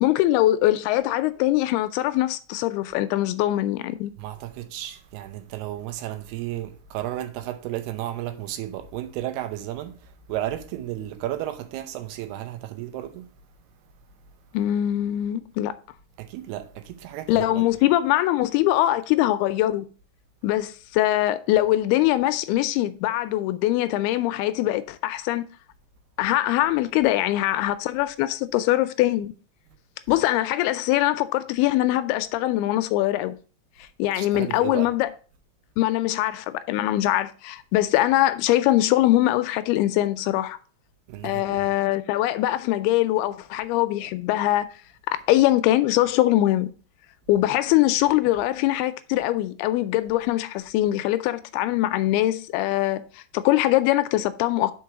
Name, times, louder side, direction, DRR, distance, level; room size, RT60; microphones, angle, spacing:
voice 1, 0.0-4.1 14.5-15.7 17.3-19.9 20.4-25.4 26.2-29.3 30.1-33.4 33.8-35.1 35.8-40.6 41.2-44.7 45.1-46.7 47.3-54.7, left 15 dB, 85° left, 2.5 m, -22 dB
voice 2, 4.2-13.3 16.2-17.7 34.1-34.9 41.1-41.7, right 13 dB, 80° right, 2.8 m, -33 dB
5.9 x 4.7 x 5.7 m
omnidirectional pair, 4.6 m